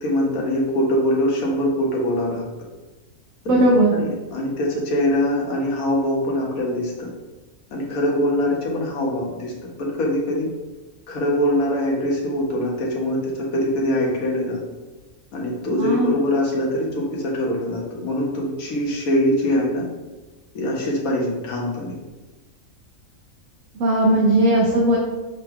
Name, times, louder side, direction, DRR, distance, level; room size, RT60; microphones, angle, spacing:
voice 1, 0.0-2.4 3.4-7.1 7.7-9.5 9.8-10.5 11.1-14.6 15.3-19.8 20.5-21.9, left 1 dB, 85° left, -2 dB, 1.4 m, -23 dB
voice 2, 3.5-3.9 15.8-16.1 23.8-25.0, right 1 dB, 70° right, -1 dB, 1.0 m, -17 dB
6.7 x 2.2 x 3.5 m, 1.2 s
omnidirectional pair, 1.5 m